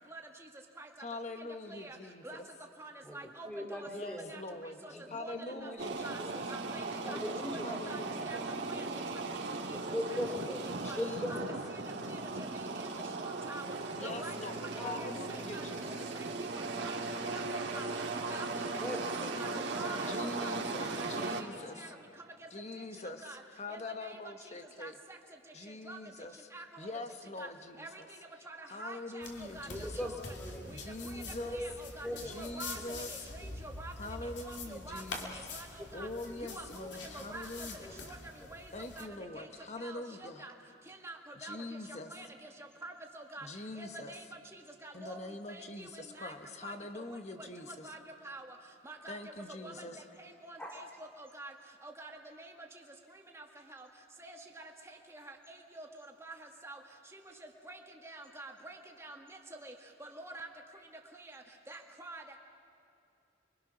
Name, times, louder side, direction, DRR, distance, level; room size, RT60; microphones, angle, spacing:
voice 1, 1.0-2.5 3.9-6.5 7.6-8.4 10.8-11.6 13.9-16.2 20.0-21.9 22.5-25.0 25.5-26.5 26.8-28.1 28.7-30.1 30.7-31.7 32.2-33.3 34.0-35.5 35.9-38.0 38.7-40.5 41.3-42.2 43.4-44.2 44.9-47.9 49.1-50.1, left 2 dB, 35° left, 6 dB, 1.3 m, -44 dB
voice 2, 2.8-3.9 4.3-4.4 4.8-4.9 5.2-5.3 5.6-6.2 6.5-7.2 7.7-8.4 8.7-8.9 10.1-10.2 10.8-11.0 11.3-11.4 12.1-12.2 12.5-12.9 13.2-13.6 14.0-15.1 15.5-15.6 16.8-17.0 17.2-17.9 18.3-18.5 18.7-18.8 19.1-20.6 20.8-21.3 21.8-21.9 23.2-23.4 23.7-24.2 24.8-25.2 25.9-26.0 26.5-26.9 27.4-27.5 27.8-28.0 28.5-29.7 30.0-30.1 30.7-30.8 31.1-32.1 32.4-32.8 33.1-33.9 34.2-35.0 35.3-36.1 36.4-36.9 37.1-37.7 38.1-38.2 38.5-39.1 39.4-39.5 39.8-40.5 40.9-41.6 42.1-42.3 42.8-43.5 43.8-44.2 44.8-45.2 45.5-46.3 46.6-47.2 47.8-48.0 48.2-48.5 48.8-49.2 49.6-49.7 50.4-50.8 51.3-51.5 51.8-52.1 52.4-52.5 53.3-53.4 53.7-53.9 54.2-54.6 55.1-55.3 55.8-55.9 56.2-56.8 57.1-57.2 57.7-57.8 58.0-59.7 60.0-60.5 61.2-62.2, right 2 dB, 15° right, 1 dB, 1.9 m, -47 dB
voice 3, 3.5-4.3 5.1-5.8 6.1-6.3 7.0-7.7 9.7-11.4 14.3-14.4 14.8-15.4 15.7-15.8 18.8-19.3 29.7-30.8 31.1-31.7 32.0-32.4 32.8-32.9 33.4-33.5 35.8-36.4 37.8-38.1 49.6-49.8 50.6-50.7, left 1 dB, 5° left, -1 dB, 3.1 m, -40 dB
sound 1, 5.8-21.4, right 3 dB, 65° right, 2.1 m, -38 dB
sound 2, 29.2-39.1, left 3 dB, 70° left, 2.9 m, -46 dB
29.5 x 24.0 x 6.2 m, 2.6 s
head